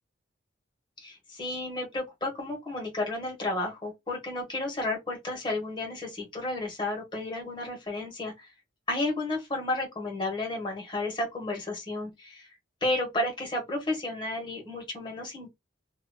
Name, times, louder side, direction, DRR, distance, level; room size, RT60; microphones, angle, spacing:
voice 1, 1.0-8.5 8.9-12.5 12.8-15.5, left 2 dB, 25° left, 1.3 m, -32 dB
2.9 x 2.7 x 2.3 m
head